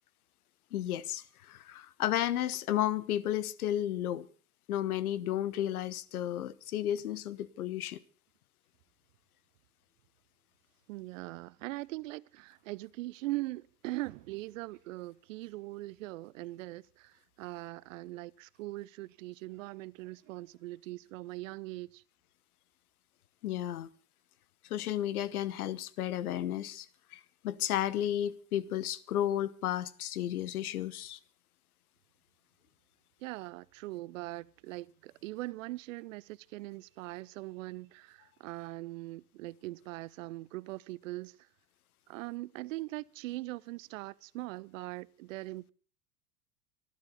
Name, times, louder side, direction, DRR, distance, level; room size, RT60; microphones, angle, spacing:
voice 1, 0.7-4.3 4.7-8.0 23.4-23.9 24.7-26.9 27.1-31.2, left 12 dB, 65° left, 1.2 m, -33 dB
voice 2, 10.9-22.0 33.2-41.4 42.1-45.7, right 19 dB, 55° right, 0.7 m, -41 dB
25.5 x 11.5 x 4.1 m
hypercardioid pair, 90°, 47 cm